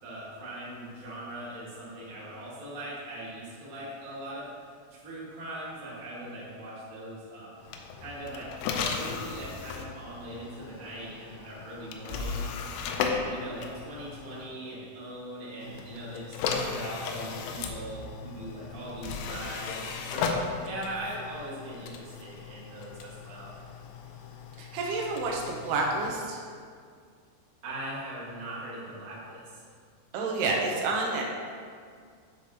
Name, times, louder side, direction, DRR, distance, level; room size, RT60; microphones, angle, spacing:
voice 1, 0.0-4.5 4.9-7.6 8.0-12.4 13.0-23.5 27.6-29.6, right 1 dB, 45° right, -9 dB, 1.0 m, -40 dB
sound 1, 7.6-14.5 15.6-26.1, left 5 dB, 90° left, 2.0 m, -36 dB
voice 2, 24.6-26.4 30.1-31.2, right 3 dB, 80° right, -1 dB, 2.8 m, -29 dB
9.6 x 4.9 x 3.0 m, 2.1 s
omnidirectional pair, 4.7 m